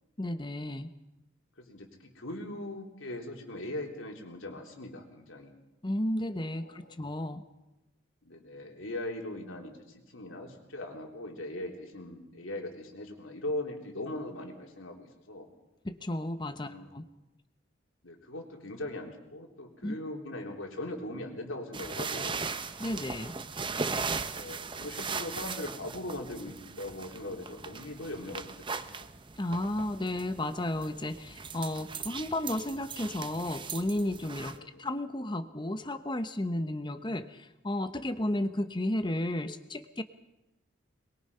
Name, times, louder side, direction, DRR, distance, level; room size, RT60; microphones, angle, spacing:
voice 1, 0.2-0.9 5.8-7.4 15.8-17.0 19.8-19.9 22.8-23.4 29.4-40.0, left 1 dB, 25° left, 10 dB, 0.9 m, -33 dB
voice 2, 1.6-5.5 6.5-6.8 8.3-15.5 16.6-16.9 18.0-22.5 24.3-29.1 34.6-34.9, left 1 dB, 90° left, 1 dB, 3.5 m, -40 dB
sound 1, 21.7-34.6, right 4 dB, 25° right, 0.7 m, -38 dB
23.0 x 21.5 x 5.6 m, 0.98 s
head